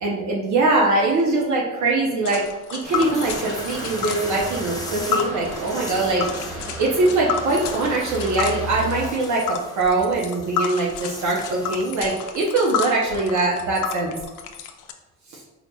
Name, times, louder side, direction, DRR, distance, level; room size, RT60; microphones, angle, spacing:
voice 1, 0.0-2.4 2.7-6.3 6.8-14.2 15.3-15.4, right 2 dB, 70° right, -3 dB, 0.8 m, -22 dB
Tick, 2.2-14.9, left 7 dB, 85° left, 0.5 m, -31 dB
sound 1, 2.8-12.1, left 2 dB, 10° left, 0.7 m, -40 dB
sound 2, 2.8-9.1, right 2 dB, 40° right, 1.1 m, -34 dB
4.2 x 4.0 x 2.3 m, 1.1 s
cardioid pair, 90°, 30 cm